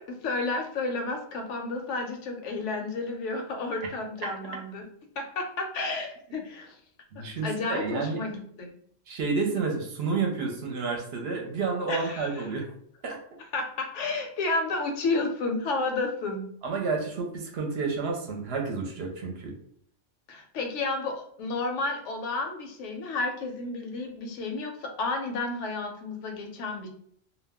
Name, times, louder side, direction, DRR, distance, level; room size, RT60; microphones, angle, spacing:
voice 1, 0.0-4.9 5.2-6.8 7.2-8.7 11.9-12.4 13.5-16.5 20.3-26.9, left 3 dB, 80° left, 4 dB, 0.9 m, -31 dB
voice 2, 7.1-8.2 9.1-12.7 13.0-13.2 16.6-19.5, right 4 dB, 65° right, 2 dB, 0.8 m, -30 dB
2.3 x 2.1 x 3.4 m, 0.63 s
omnidirectional pair, 1.2 m